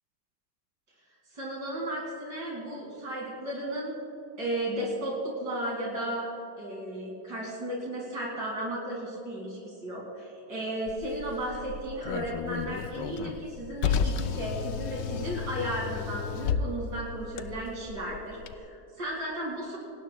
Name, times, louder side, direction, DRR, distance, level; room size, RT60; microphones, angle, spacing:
voice 1, 1.3-4.0 4.4-6.3 6.6-19.8, right 1 dB, 70° right, -4 dB, 2.9 m, -34 dB
Car, 10.9-18.5, left 6 dB, 80° left, 1.3 m, -33 dB
28.5 x 18.5 x 2.2 m, 2.8 s
omnidirectional pair, 1.9 m